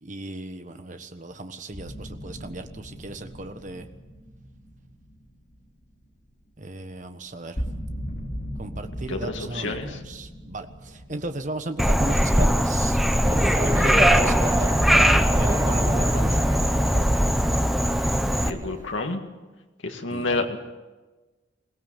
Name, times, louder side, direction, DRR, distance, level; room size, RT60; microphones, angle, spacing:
voice 1, 0.0-3.9 6.6-7.6 8.6-13.0 13.6-17.3 20.1-20.5, right 2 dB, 40° right, 8 dB, 1.3 m, -36 dB
sound 1, 1.7-6.6 6.9-7.0 7.3-12.8, equal, 45° left, 3.1 m, -38 dB
voice 2, 9.1-10.0 18.4-19.2 19.8-20.6, left 3 dB, 80° left, 3 dB, 1.9 m, -29 dB
Frog, 11.8-18.5, equal, ahead, 0.8 m, -21 dB
sound 2, 13.2-18.9, right 1 dB, 15° right, 1.4 m, -26 dB
22.0 x 18.0 x 7.6 m, 1.2 s
head